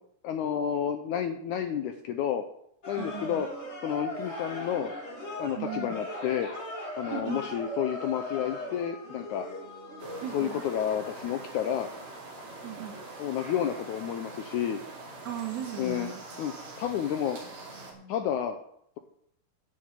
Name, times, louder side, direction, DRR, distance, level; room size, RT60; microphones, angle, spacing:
voice 1, 0.2-2.5 2.9-3.5 3.8-4.9 5.4-6.5 7.0-9.5 10.3-11.9 13.2-14.8 15.8-16.1 16.4-16.5 16.8-17.4 18.1-18.6, left 9 dB, 80° left, 7 dB, 1.8 m, -30 dB
sound 1, 2.8-16.2 16.5-16.6, left 1 dB, 20° left, 2.1 m, -40 dB
voice 2, 3.0-3.4 5.6-5.9 7.1-7.5 10.2-10.6 12.6-13.0 15.3-16.2 17.8-18.3, right 9 dB, 85° right, 3 dB, 3.6 m, -37 dB
sound 2, 10.0-17.9, right 3 dB, 50° right, 3.8 m, -44 dB
10.5 x 6.5 x 8.8 m, 0.73 s
omnidirectional pair, 4.2 m